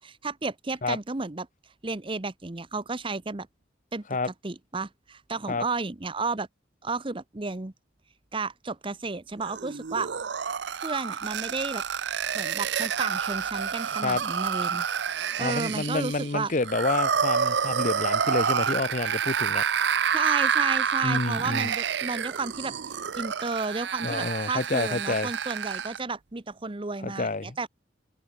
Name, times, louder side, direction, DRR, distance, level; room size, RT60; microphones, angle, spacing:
voice 1, 0.0-1.5 1.8-3.5 3.9-4.0 4.4-6.5 6.8-7.7 8.3-10.1 10.8-11.8 12.3-14.8 15.4-16.5 20.1-22.7 23.2-27.7, right 3 dB, 25° right, 0.8 m, -32 dB
sound 1, 9.4-26.0, right 7 dB, 65° right, 0.6 m, -28 dB
voice 2, 15.4-19.6 21.0-21.7 24.0-25.3 27.0-27.6, left 3 dB, 40° left, 0.9 m, -28 dB
head